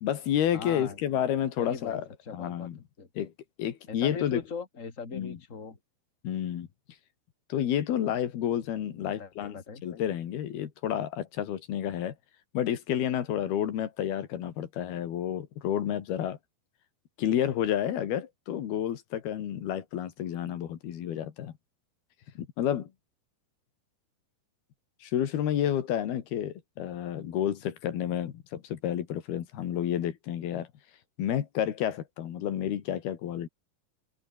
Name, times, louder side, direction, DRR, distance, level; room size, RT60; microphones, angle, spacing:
voice 1, 0.0-2.8 3.2-3.3 3.6-4.4 5.1-5.4 6.2-6.7 7.5-12.1 12.5-16.4 17.2-21.5 22.4-22.9 25.0-30.7 31.2-33.5, left 10 dB, 85° left, 4.0 m, -30 dB
voice 2, 0.5-1.0 1.6-2.7 3.0-3.1 3.9-5.8 9.0-9.8, left 5 dB, 20° left, 3.3 m, -40 dB
open air
omnidirectional pair, 4.3 m